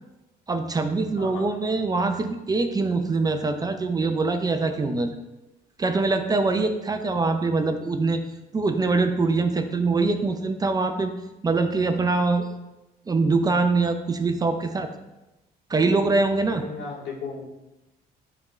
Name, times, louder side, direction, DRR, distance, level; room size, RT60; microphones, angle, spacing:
voice 1, 0.5-5.1 5.8-8.2 8.5-11.1 11.4-12.5 13.1-14.9 15.7-16.6, right 3 dB, 20° right, 7 dB, 0.5 m, -23 dB
voice 2, 16.4-17.5, left 4 dB, 80° left, -3 dB, 2.0 m, -36 dB
9.8 x 3.7 x 3.2 m, 1.0 s
cardioid pair, 110°, 17 cm